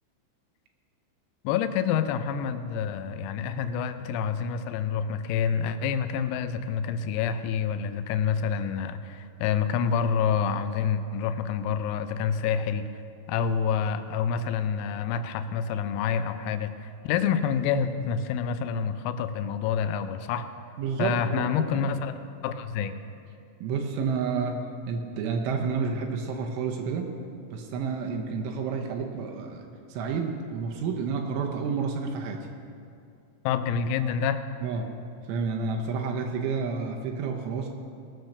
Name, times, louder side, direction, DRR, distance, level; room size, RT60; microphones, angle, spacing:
voice 1, 1.4-12.9 13.3-20.4 21.0-22.1 22.4-22.9 33.5-34.4, left 7 dB, 85° left, 10 dB, 3.4 m, -27 dB
voice 2, 20.8-21.9 23.6-27.1 27.5-32.5 34.6-34.9 35.3-37.7, right 5 dB, 80° right, 2 dB, 3.1 m, -30 dB
19.0 x 6.5 x 6.6 m, 2.5 s
omnidirectional pair, 6.0 m